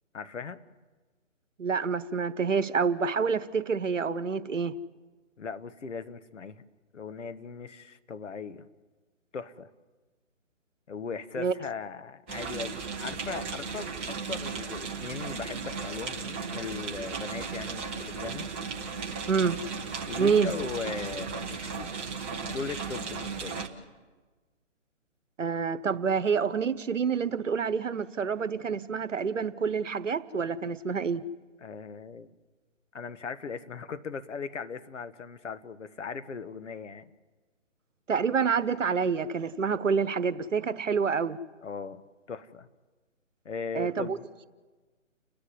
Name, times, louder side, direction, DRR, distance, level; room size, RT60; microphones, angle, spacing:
voice 1, 0.1-0.6 5.4-6.6 6.9-8.6 9.3-9.7 10.9-18.5 20.1-21.9 22.4-23.6 31.6-32.3 32.9-37.0 41.6-42.0 42.3-42.7 43.4-44.2, left 5 dB, 70° left, 11 dB, 1.4 m, -38 dB
voice 2, 1.6-4.7 11.4-11.5 19.3-19.6 20.2-20.5 25.4-31.2 38.1-41.4 43.7-44.2, right 6 dB, 75° right, 14 dB, 1.2 m, -27 dB
sound 1, 12.3-23.7, right 5 dB, 10° right, 0.6 m, -36 dB
30.0 x 10.5 x 9.8 m, 1.3 s
figure-of-eight pair, 145°, 38 cm